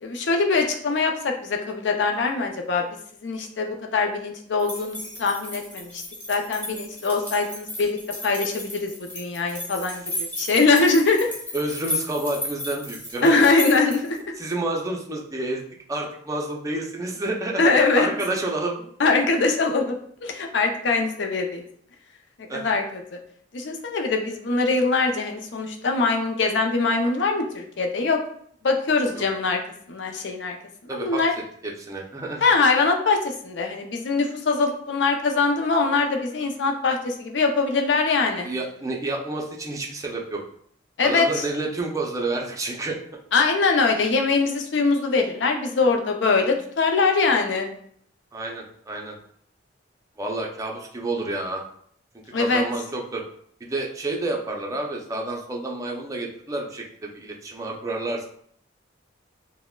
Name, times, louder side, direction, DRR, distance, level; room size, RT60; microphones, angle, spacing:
voice 1, 0.0-2.8 3.2-6.0 6.3-11.3 13.2-14.2 17.6-18.1 19.0-21.7 22.5-23.2 23.5-28.2 28.6-29.6 29.9-30.6 30.8-31.3 32.4-38.5 41.0-41.4 43.3-47.7 52.3-52.6, left 4 dB, 65° left, 3 dB, 0.5 m, -22 dB
sound 1, 4.6-14.2, left 1 dB, 10° left, 1.4 m, -34 dB
voice 2, 11.5-13.4 14.4-15.6 15.9-18.8 22.5-22.7 29.1-29.2 30.9-31.2 31.6-32.4 38.4-40.4 41.0-43.0 48.3-49.2 50.2-51.6 52.4-53.2 53.6-58.3, right 2 dB, 15° right, 0 dB, 0.5 m, -29 dB
5.7 x 2.1 x 2.2 m, 0.64 s
head